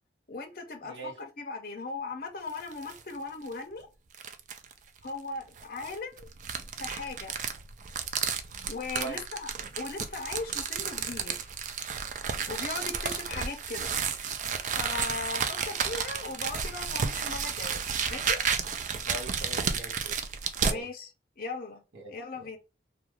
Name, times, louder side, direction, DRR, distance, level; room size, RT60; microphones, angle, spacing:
voice 1, 0.3-3.9 5.0-6.3 6.8-7.4 8.7-9.5 9.8-11.5 12.5-13.9 14.7-18.4 20.6-21.1 21.4-21.8 22.1-22.6, left 3 dB, 50° left, 0.5 m, -38 dB
voice 2, 0.8-1.2 9.0-9.2 19.0-20.2 20.6-20.9 21.9-22.6, right 3 dB, 75° right, 0.7 m, -42 dB
sound 1, 2.5-3.0 3.5-3.6 4.1-4.7 5.6-20.8, right 6 dB, 40° right, 0.3 m, -32 dB
2.3 x 2.3 x 3.0 m
head